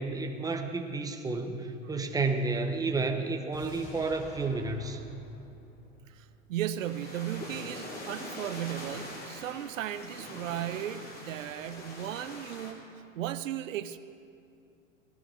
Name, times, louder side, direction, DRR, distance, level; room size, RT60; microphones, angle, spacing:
voice 1, 0.0-5.0, right 3 dB, 10° right, 5 dB, 1.1 m, -31 dB
sound 1, 3.5-6.7 7.0-7.1, left 2 dB, 55° left, 3.5 m, -50 dB
voice 2, 6.1-12.9 13.1-14.0, right 11 dB, 80° right, 12 dB, 0.7 m, -36 dB
sound 2, 6.8-12.7, left 1 dB, 25° left, 3.0 m, -43 dB
17.0 x 12.0 x 4.8 m, 2.5 s
hypercardioid pair, 100°, 38 cm